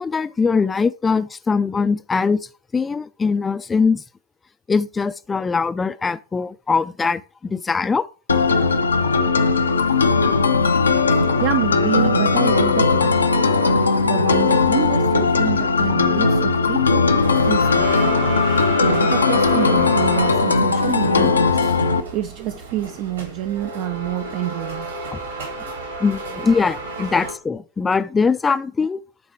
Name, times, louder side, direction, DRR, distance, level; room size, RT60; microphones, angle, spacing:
voice 1, 0.0-2.4 2.7-4.0 4.7-8.1 21.2-21.3 26.0-29.0, left 5 dB, 15° left, 0.4 m, -21 dB
sound 1, 8.3-22.0, left 4 dB, 75° left, 0.7 m, -18 dB
voice 2, 11.4-17.1 17.4-18.2 18.8-21.7 22.1-24.9, right 14 dB, 40° right, 0.5 m, -28 dB
sound 2, 17.0-27.3, right 1 dB, 70° right, 3.3 m, -30 dB
9.3 x 4.1 x 4.8 m
figure-of-eight pair, 90°, 0 cm